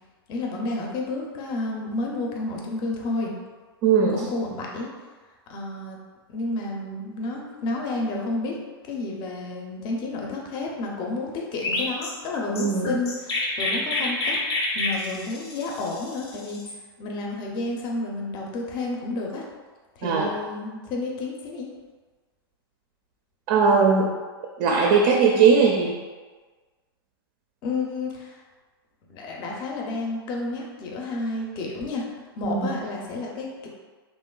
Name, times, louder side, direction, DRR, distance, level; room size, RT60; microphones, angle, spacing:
voice 1, 0.3-3.3 4.1-4.9 5.5-6.0 6.3-8.6 8.8-14.4 14.7-16.6 17.0-19.4 20.0-21.7 27.6-28.4 29.1-32.0 32.4-33.7, left 2 dB, 35° left, -1 dB, 0.5 m, -30 dB
voice 2, 3.8-4.2 12.6-12.9 20.0-20.3 23.5-24.1 24.6-26.0 32.4-32.7, right 5 dB, 45° right, -1 dB, 0.4 m, -19 dB
Chirp tweet, 11.6-16.8, left 2 dB, 80° left, 0.6 m, -28 dB
3.0 x 2.3 x 2.2 m, 1.4 s
hypercardioid pair, 115°, 13 cm